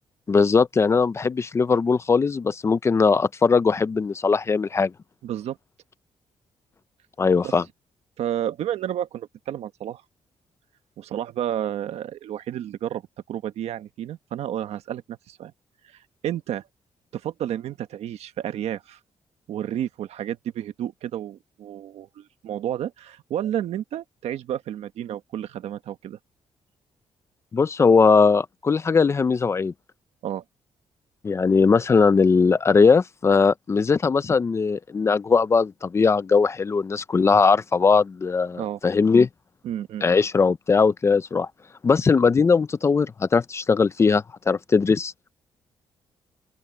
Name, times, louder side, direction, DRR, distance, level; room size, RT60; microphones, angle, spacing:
voice 1, 0.3-4.9 7.2-7.6 27.5-29.7 31.2-39.3 40.0-41.5 41.8-45.1, left 5 dB, 25° left, 0.6 m, -20 dB
voice 2, 5.2-5.6 7.4-7.5 8.2-10.0 11.0-13.0 13.3-15.5 15.8-16.6 17.1-19.0 19.5-26.2 30.2-30.4 38.6-38.8 39.6-40.1, right 11 dB, 80° right, 1.3 m, -31 dB
open air
cardioid pair, 155°, 11 cm